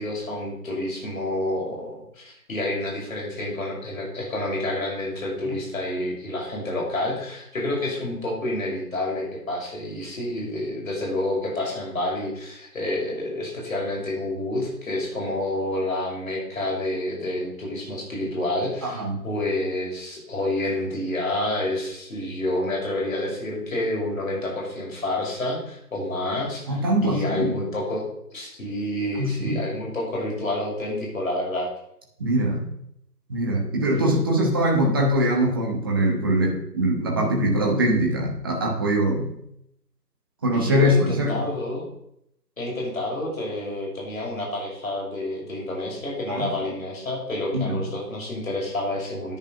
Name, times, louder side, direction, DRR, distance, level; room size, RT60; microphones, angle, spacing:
voice 1, 0.0-28.1 28.3-31.7 33.9-34.1 40.5-41.9 42.6-49.4, left 1 dB, 55° left, -2 dB, 6.3 m, -29 dB
voice 2, 18.8-19.2 26.7-27.6 29.2-29.6 32.2-32.7 33.3-39.3 40.4-41.5 46.3-46.5 47.5-47.8, right 1 dB, 15° right, -1 dB, 1.2 m, -22 dB
11.0 x 9.8 x 5.8 m, 0.77 s
figure-of-eight pair, 155°, 49 cm